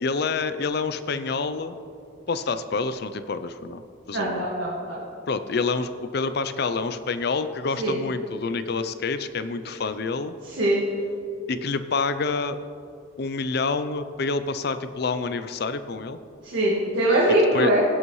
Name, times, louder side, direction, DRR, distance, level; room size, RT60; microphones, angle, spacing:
voice 1, 0.0-1.8 2.3-3.8 4.1-4.5 5.3-10.3 11.5-12.6 13.2-16.2 17.5-17.7, left 4 dB, 55° left, 11 dB, 0.5 m, -27 dB
voice 2, 4.1-5.0 7.8-8.0 10.5-10.8 16.4-17.8, right 1 dB, 65° right, -5 dB, 1.8 m, -22 dB
18.0 x 8.1 x 3.2 m, 2.5 s
head